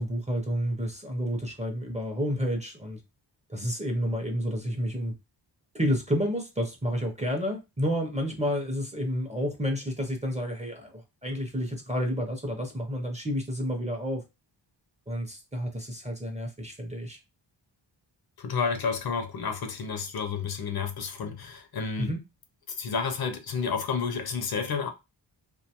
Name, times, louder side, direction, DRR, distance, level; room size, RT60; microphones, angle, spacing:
voice 1, 0.0-3.0 3.5-5.1 5.7-14.2 15.1-17.2 22.0-22.2, equal, 15° right, 0.5 m, -30 dB
voice 2, 18.4-22.1 22.7-24.9, left 5 dB, 55° left, 0.5 m, -30 dB
2.5 x 2.2 x 2.8 m
wide cardioid pair, 145°, 45 cm